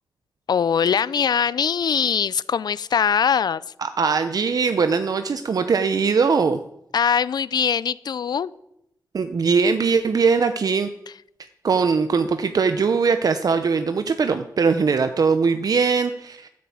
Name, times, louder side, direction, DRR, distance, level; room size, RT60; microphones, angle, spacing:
voice 1, 0.5-3.6 6.9-8.5, left 7 dB, 75° left, 20 dB, 0.5 m, -21 dB
voice 2, 3.8-6.6 9.1-10.9 11.6-16.5, right 5 dB, 60° right, 9 dB, 0.8 m, -21 dB
13.0 x 9.5 x 8.6 m, 0.81 s
wide cardioid pair, 135°, 7 cm